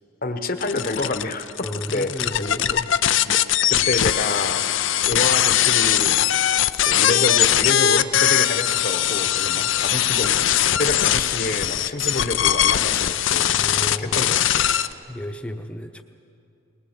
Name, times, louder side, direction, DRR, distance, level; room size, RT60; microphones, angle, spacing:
voice 1, 0.2-1.5 1.9-2.1 2.4-2.8 3.2-3.4 3.7-4.6 5.1-6.2 6.8-10.3 10.8-13.6 14.0-14.7, left 2 dB, 45° left, 8 dB, 1.1 m, -27 dB
sound 1, 0.6-14.9, left 11 dB, 65° left, 0.5 m, -20 dB
voice 2, 1.6-2.9 9.5-9.7 13.5-14.4 15.1-16.0, equal, 5° left, 5 dB, 0.9 m, -33 dB
21.0 x 21.0 x 7.2 m, 2.6 s
head